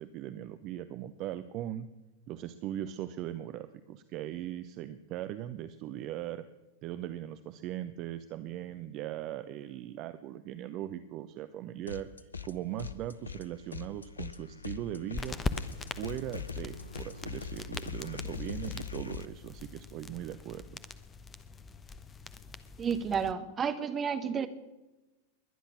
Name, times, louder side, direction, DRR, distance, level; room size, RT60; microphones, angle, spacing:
voice 1, 0.0-1.9 2.3-6.4 6.8-15.4 16.0-20.6, right 12 dB, 40° right, 11 dB, 0.7 m, -39 dB
sound 1, 11.9-12.5 12.8-19.3, left 6 dB, 75° left, 0.8 m, -42 dB
sound 2, 15.1-23.3, left 4 dB, 20° left, 0.9 m, -42 dB
voice 2, 22.8-24.5, right 6 dB, 25° right, 9 dB, 1.4 m, -31 dB
21.5 x 10.5 x 6.4 m, 1.1 s
figure-of-eight pair, 90°, 0 cm